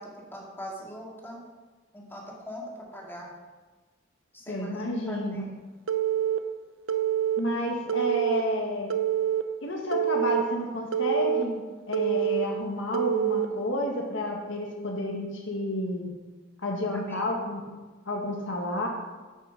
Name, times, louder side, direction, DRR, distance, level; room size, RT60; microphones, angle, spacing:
voice 1, 0.0-1.4 1.9-3.3 4.3-5.5 16.9-17.2, equal, 10° left, -3 dB, 2.1 m, -42 dB
voice 2, 4.5-5.5 7.4-8.9 9.6-16.1 16.6-17.7 18.1-18.9, left 1 dB, 70° left, 0 dB, 1.8 m, -30 dB
Telephone, 5.9-6.4 6.9-7.4 7.9-8.4 8.9-9.4 9.9-10.4 10.9-11.4 11.9-12.4 12.9-13.4, right 11 dB, 80° right, 0.6 m, -26 dB
9.3 x 6.3 x 5.4 m, 1.3 s
head